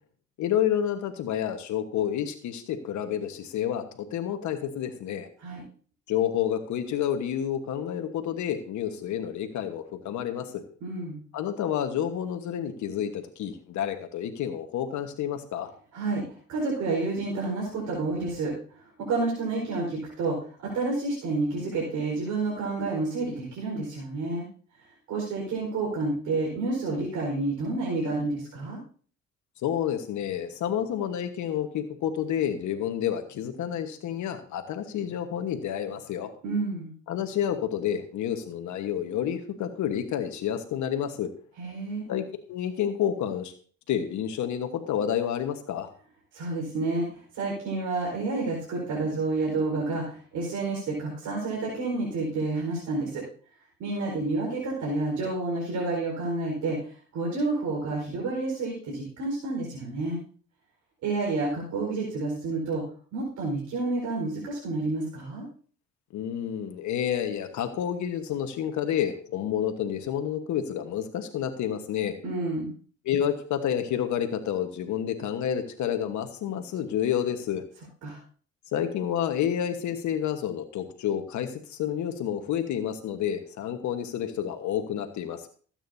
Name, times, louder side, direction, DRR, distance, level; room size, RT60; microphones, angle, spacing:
voice 1, 0.4-5.3 6.1-10.6 11.3-15.7 29.6-36.3 37.1-41.3 42.1-43.5 43.9-45.9 66.1-72.1 73.0-77.6 78.7-85.5, left 9 dB, 75° left, 7 dB, 1.3 m, -29 dB
voice 2, 10.8-11.2 15.9-16.2 16.5-24.5 25.1-28.8 36.4-36.9 41.6-42.0 46.3-53.2 53.8-56.8 57.1-60.2 61.0-62.8 63.1-65.5 72.2-72.7 78.0-78.2, right 3 dB, 80° right, -3 dB, 4.6 m, -29 dB
20.0 x 8.9 x 2.7 m, 0.43 s
cardioid pair, 75°, 29 cm